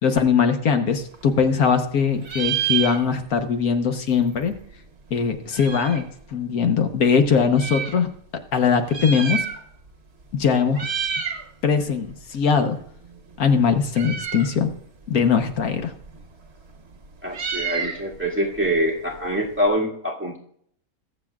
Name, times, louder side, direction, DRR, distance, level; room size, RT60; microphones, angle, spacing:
voice 1, 0.0-4.5 5.1-6.0 6.3-8.1 8.5-9.4 10.3-10.9 11.6-12.8 13.4-14.7 15.1-15.9, left 6 dB, 80° left, 7 dB, 1.5 m, -21 dB
Meow, 0.9-1.9 2.2-3.5 3.8-3.9 4.0-6.1 6.8-8.0 8.7-9.9 10.2-10.4 10.7-11.5 11.8-19.7, right 7 dB, 50° right, 1.4 m, -31 dB
voice 2, 17.2-20.4, equal, 10° right, -3 dB, 1.9 m, -24 dB
22.0 x 7.6 x 2.4 m, 0.65 s
omnidirectional pair, 1.5 m